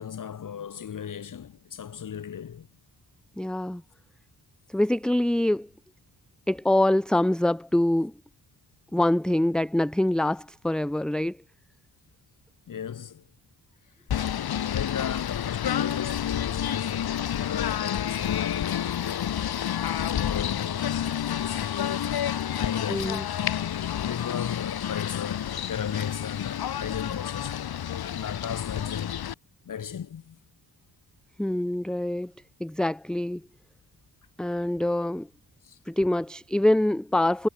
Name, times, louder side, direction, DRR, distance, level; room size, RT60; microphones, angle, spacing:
voice 1, 0.0-2.7 12.7-13.3 14.7-19.5 20.1-23.2 24.0-27.6 28.1-29.3 29.7-30.4 35.6-35.8, left 8 dB, 55° left, 2.2 m, -35 dB
voice 2, 3.4-3.8 4.7-5.7 6.5-8.1 8.9-11.4 22.9-23.2 31.4-32.3 32.6-33.4 34.4-35.3 35.9-37.5, left 1 dB, ahead, 0.7 m, -25 dB
Singing / Bird, 14.1-29.3, left 10 dB, 80° left, 2.0 m, -29 dB
wide cardioid pair, 170°, 37 cm